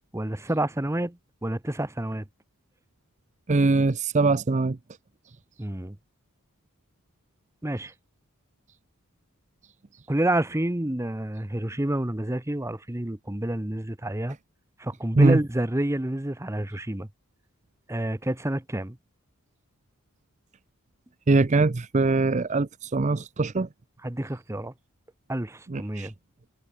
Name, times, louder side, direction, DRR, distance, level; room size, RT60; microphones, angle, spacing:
voice 1, 0.1-2.2 5.6-6.0 7.6-7.9 10.1-14.4 14.8-17.1 17.9-19.0 24.0-24.7 25.3-26.1, right 1 dB, 10° right, 0.9 m, -28 dB
voice 2, 3.5-4.8 15.2-15.4 21.3-23.7 25.7-26.1, right 3 dB, 30° right, 0.5 m, -22 dB
head